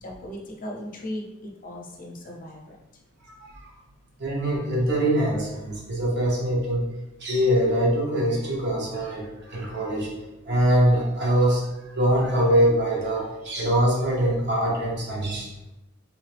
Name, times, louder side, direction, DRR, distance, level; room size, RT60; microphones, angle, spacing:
voice 1, 0.0-2.8, left 1 dB, 40° left, -1 dB, 0.7 m, -37 dB
voice 2, 3.3-3.7 4.2-6.8 7.2-10.1 10.4-11.7 12.0-15.7, right 1 dB, 55° right, -2 dB, 1.0 m, -23 dB
3.8 x 3.1 x 3.3 m, 0.98 s
head